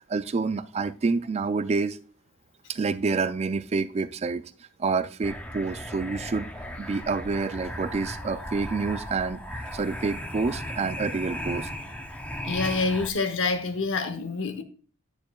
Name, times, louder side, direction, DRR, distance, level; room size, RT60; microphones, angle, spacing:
voice 1, 0.1-2.0 2.7-4.4 4.8-6.5 6.8-11.7, right 4 dB, 30° right, 0.3 m, -28 dB
sound 1, 5.2-13.1, equal, 5° left, 0.7 m, -36 dB
voice 2, 12.4-14.6, left 3 dB, 60° left, 0.9 m, -27 dB
9.6 x 6.7 x 2.3 m
head